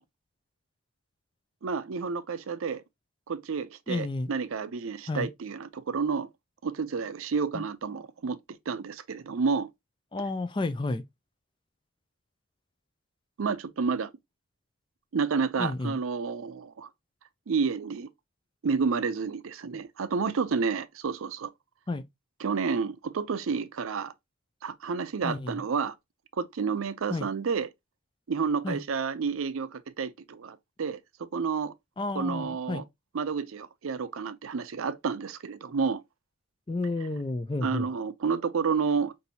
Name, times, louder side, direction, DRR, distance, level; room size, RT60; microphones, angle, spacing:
voice 1, 1.6-2.8 3.3-6.3 6.6-8.4 8.7-9.7 13.4-14.1 15.1-16.9 17.5-18.1 18.6-21.5 22.4-24.1 24.6-25.9 26.4-27.7 28.3-31.7 32.1-32.8 33.1-36.0 37.6-39.1, right 5 dB, 75° right, 0.5 m, -30 dB
voice 2, 3.9-4.3 5.1-5.3 7.5-7.7 10.1-11.0 15.6-16.0 19.7-19.8 21.9-22.1 25.2-25.6 27.1-27.3 28.6-28.8 32.0-32.8 36.7-37.9, left 2 dB, 20° left, 0.3 m, -31 dB
5.4 x 2.6 x 2.7 m
head